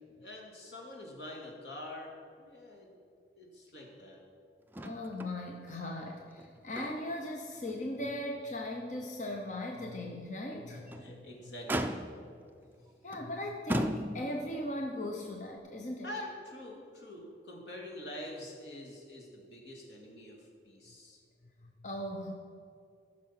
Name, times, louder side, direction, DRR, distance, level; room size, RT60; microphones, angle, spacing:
voice 1, 0.2-2.9 3.4-4.2 10.7-12.1 16.0-21.2, left 1 dB, 80° left, -1 dB, 2.3 m, -46 dB
Motor vehicle (road), 4.7-5.4 5.7-5.8 6.3-7.2 7.7-7.8 8.3-8.4 10.7-11.1 11.7-12.4 13.1-13.3 13.7-14.5 15.6-15.7, equal, 10° right, 0.4 m, -36 dB
voice 2, 4.8-11.3 13.0-16.1 21.6-22.3, left 1 dB, 40° left, 1 dB, 0.8 m, -38 dB
14.0 x 6.2 x 5.8 m, 2.4 s
head